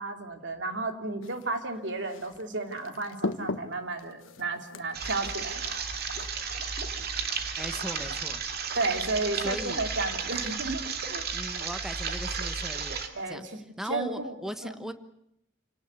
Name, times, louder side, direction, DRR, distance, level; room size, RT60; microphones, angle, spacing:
voice 1, 0.0-5.6 8.8-11.3 13.1-13.4 13.8-14.3 14.6-14.9, right 3 dB, 70° right, 5 dB, 3.1 m, -33 dB
sound 1, 1.2-6.3, left 2 dB, 90° left, 1.3 m, -39 dB
sound 2, 4.9-13.1, right 5 dB, 55° right, 2.5 m, -33 dB
voice 2, 7.6-8.4 9.3-9.8 11.3-13.5 13.8-14.9, equal, ahead, 9 dB, 1.3 m, -38 dB
28.5 x 18.5 x 8.4 m, 0.82 s
head